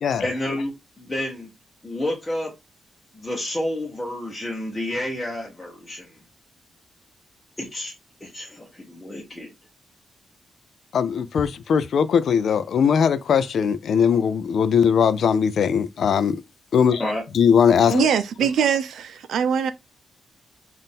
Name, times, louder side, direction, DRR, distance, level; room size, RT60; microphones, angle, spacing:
voice 1, 0.2-1.5 1.8-2.5 3.1-6.2 7.6-7.9 8.2-9.5 17.0-17.2, left 1 dB, 10° left, 0.9 m, -30 dB
voice 2, 10.9-16.4 16.7-17.0 17.3-18.1, left 7 dB, 65° left, 0.4 m, -20 dB
voice 3, 17.9-19.7, right 7 dB, 85° right, 0.5 m, -22 dB
4.1 x 2.5 x 3.6 m
wide cardioid pair, 140°, 0 cm